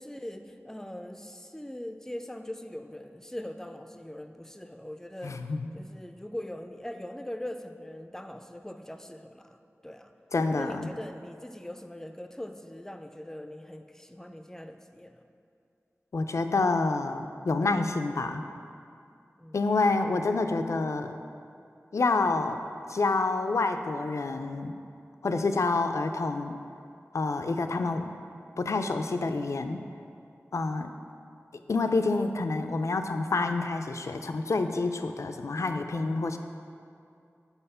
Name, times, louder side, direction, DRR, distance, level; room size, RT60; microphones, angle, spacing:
voice 1, 0.0-9.6 9.8-10.1 10.6-15.3 19.4-19.6, left 1 dB, 10° left, 7 dB, 0.3 m, -41 dB
voice 2, 5.2-5.7 10.3-10.9 16.1-18.4 19.5-21.1 21.9-22.6 22.9-24.7 25.2-26.6 27.1-28.1 28.6-29.8 30.5-30.9 31.7-36.4, left 3 dB, 80° left, 7 dB, 0.3 m, -28 dB
5.6 x 4.1 x 5.5 m, 2.5 s
wide cardioid pair, 65°, 5 cm